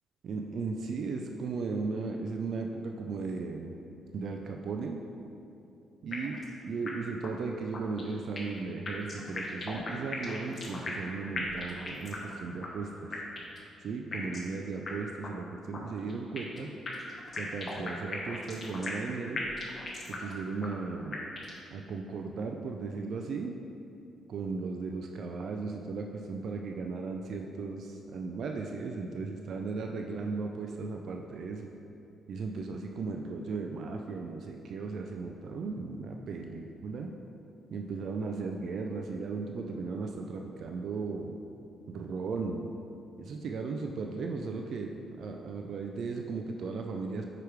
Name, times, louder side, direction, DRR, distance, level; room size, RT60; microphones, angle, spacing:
voice 1, 0.2-3.7 4.1-5.0 6.0-6.4 6.6-13.1 13.8-16.7 17.4-19.4 20.1-21.1 21.7-23.5 24.3-31.7 32.3-37.1 37.7-41.4 41.9-42.7 43.2-44.9 45.2-47.2, right 4 dB, 60° right, 2 dB, 0.4 m, -36 dB
sound 1, 6.1-6.5 6.9-7.0 7.2-7.3 7.7-8.6 8.9-11.1 11.4-12.3 12.6-12.7 13.1-13.6 14.1-14.5 14.9-15.0 15.2-15.3 15.7-16.6 16.9-19.1 19.4-20.3 20.6-20.7 21.1-21.6, left 2 dB, 35° left, 1.1 m, -37 dB
4.9 x 4.8 x 4.6 m, 2.8 s
cardioid pair, 90°, 0 cm